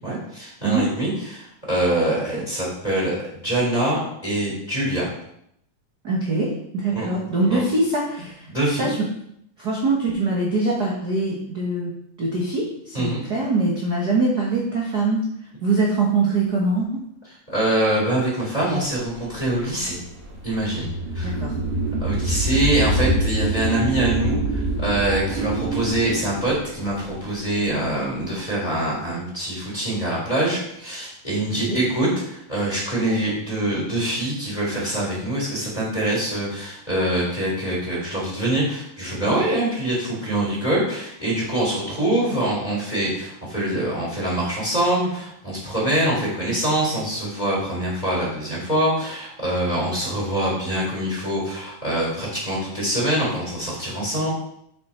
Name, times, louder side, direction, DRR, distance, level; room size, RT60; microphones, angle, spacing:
voice 1, 0.0-5.1 6.9-7.1 7.5-7.6 8.5-8.9 12.9-13.2 17.5-20.0 20.4-21.4 22.0-54.3, right 1 dB, 10° left, -4 dB, 3.3 m, -24 dB
voice 2, 6.0-8.5 8.8-9.1 9.6-11.9 12.2-15.2 15.6-16.9 21.2-21.5 31.5-31.8, right 3 dB, 65° right, -4 dB, 0.9 m, -23 dB
sound 1, 19.0-28.0, right 1 dB, 40° right, 0.9 m, -26 dB
7.4 x 5.9 x 4.4 m, 0.73 s
omnidirectional pair, 3.9 m